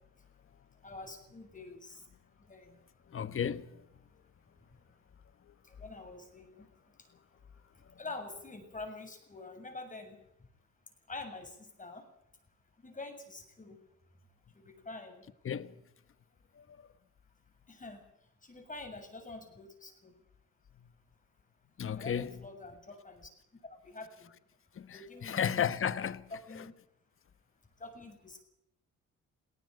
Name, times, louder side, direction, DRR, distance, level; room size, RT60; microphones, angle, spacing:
voice 1, 0.8-2.0 2.5-2.8 5.7-6.7 8.0-10.2 11.1-12.1 12.8-13.8 14.5-15.2 17.7-18.0 18.4-20.1 21.9-23.3 23.8-24.3 24.9-25.6 26.3-26.7 27.8-28.4, left 3 dB, 25° left, 7.2 m, -46 dB
voice 2, 3.1-3.8 15.4-15.7 16.5-16.9 21.8-22.3 24.7-26.3 26.5-26.6, left 8 dB, 45° left, 1.3 m, -34 dB
19.0 x 18.0 x 9.3 m
cardioid pair, 90°, 30 cm